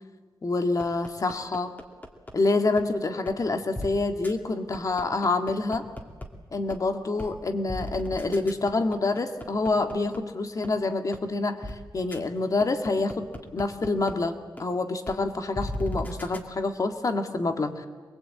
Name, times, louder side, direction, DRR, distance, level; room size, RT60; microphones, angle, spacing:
voice 1, 0.4-1.7 2.3-5.9 6.5-13.3 13.5-17.9, left 3 dB, 45° left, 7 dB, 1.9 m, -27 dB
sound 1, 0.8-2.3 2.8-2.9 3.3-3.4 3.7-3.9 4.2-4.3 4.7-6.3 6.7-6.8 7.2-7.3 7.7-10.2 10.6-10.7 11.1-11.2 11.6-11.7 12.1-12.2 12.6-14.1 14.6-14.7 15.1-15.2 15.5-16.4, left 1 dB, 20° left, 2.6 m, -35 dB
24.0 x 21.5 x 8.8 m, 1.4 s
wide cardioid pair, 100°, 8 cm